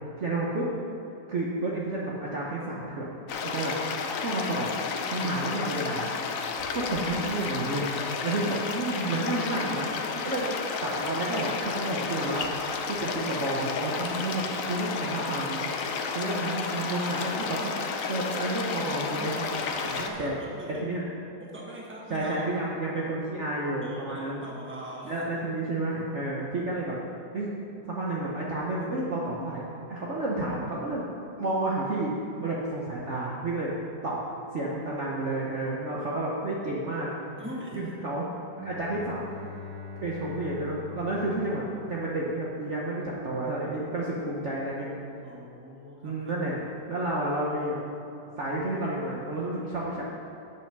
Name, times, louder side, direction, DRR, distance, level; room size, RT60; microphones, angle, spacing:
voice 1, 0.2-0.7 1.3-3.1 3.4-3.7 4.2-4.7 5.0-6.1 6.7-7.9 8.2-9.9 10.2-10.5 10.8-14.4 14.7-17.7 18.1-19.3 19.9-20.3 20.8-21.0 22.1-24.4 25.1-26.9 27.3-27.5 27.9-29.6 29.9-31.1 31.3-32.1 32.4-33.7 34.0-34.2 34.5-37.1 37.8-38.2 38.6-39.2 40.0-41.6 41.9-44.9 46.0-47.8 48.4-50.0, right 2 dB, 50° right, -4 dB, 1.1 m, -30 dB
sound 1, 3.3-20.1, left 5 dB, 65° left, 0.9 m, -32 dB
voice 2, 19.0-20.9 21.4-22.5 22.9-23.1 23.8-25.7 28.8-28.9 37.4-37.9 45.2-46.4, right 1 dB, 5° right, -3 dB, 1.1 m, -42 dB
Bowed string instrument, 38.5-42.5, left 4 dB, 65° right, 2.1 m, -43 dB
8.5 x 6.3 x 5.9 m, 2.9 s
omnidirectional pair, 2.0 m